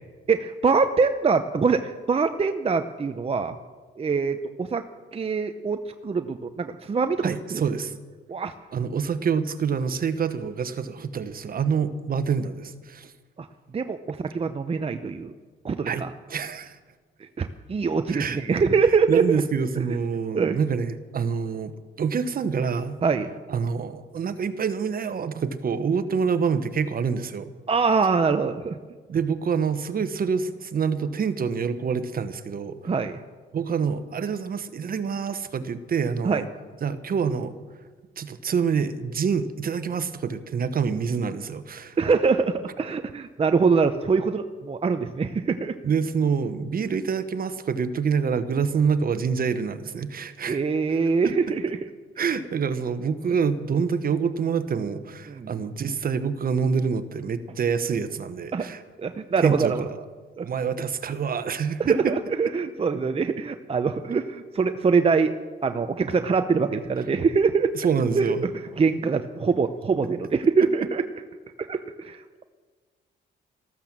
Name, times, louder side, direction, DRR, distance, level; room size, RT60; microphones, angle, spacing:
voice 1, 0.3-3.6 4.0-4.8 5.1-7.6 8.3-8.5 13.4-13.5 13.7-15.3 15.6-16.1 17.2-19.4 19.8-19.9 20.3-20.6 23.0-23.3 27.7-28.8 32.8-33.2 36.2-36.4 42.0-45.8 50.5-51.9 55.3-55.5 58.5-58.7 59.0-59.8 60.4-60.5 61.9-65.3 65.6-67.7 68.1-68.3 68.8-71.0 71.6-72.4, right 5 dB, 30° right, 8 dB, 0.7 m, -24 dB
voice 2, 7.2-8.0 8.7-13.1 15.8-16.8 18.1-18.6 19.1-23.0 23.5-27.5 29.1-32.8 33.5-36.5 36.8-37.6 38.2-42.0 45.8-50.6 51.2-51.4 52.2-58.8 59.4-60.0 60.4-62.1 67.7-68.4, right 6 dB, 45° right, 12 dB, 1.1 m, -26 dB
14.0 x 13.0 x 7.4 m, 1.4 s
cardioid pair, 90°, 20 cm